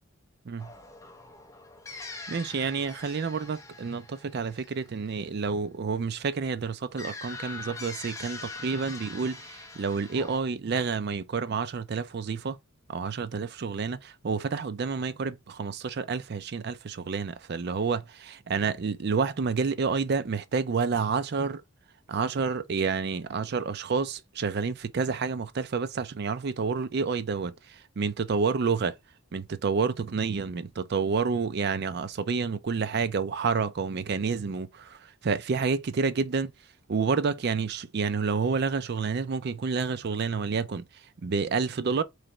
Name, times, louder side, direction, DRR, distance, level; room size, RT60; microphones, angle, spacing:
sound 1, 0.6-5.4 7.0-10.4, left 3 dB, 15° left, 0.6 m, -43 dB
voice 1, 1.9-12.6 12.9-21.6 22.1-28.9 29.3-36.5 36.9-40.8 41.2-42.0, right 5 dB, 50° right, 0.4 m, -29 dB
3.2 x 2.9 x 3.7 m
head